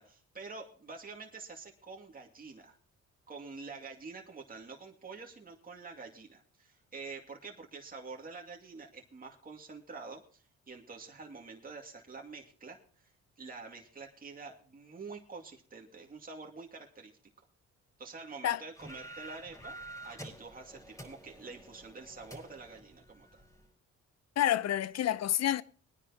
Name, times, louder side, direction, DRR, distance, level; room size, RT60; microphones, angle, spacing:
voice 1, 0.0-2.8 3.3-12.8 13.4-17.1 18.0-19.8 20.0-23.4, right 4 dB, 30° right, 2.4 m, -47 dB
sound 1, 18.7-23.7, right 1 dB, 10° left, 4.8 m, -49 dB
voice 2, 24.4-25.6, left 11 dB, 60° left, 0.7 m, -28 dB
22.0 x 10.0 x 2.9 m
cardioid pair, 90°, 30 cm